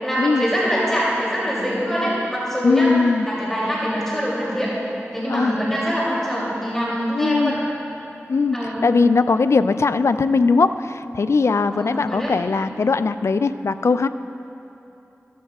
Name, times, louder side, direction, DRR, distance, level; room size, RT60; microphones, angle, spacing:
voice 1, 0.0-2.9 3.3-4.7 5.1-7.6 8.5-8.9 11.7-12.3, equal, 5° left, -8 dB, 2.8 m, -24 dB
voice 2, 2.6-3.3 5.3-5.6 7.1-7.5 8.3-8.6 8.8-14.1, left 4 dB, 70° left, 12 dB, 0.3 m, -19 dB
14.5 x 13.5 x 2.4 m, 2.9 s
wide cardioid pair, 55°, 5 cm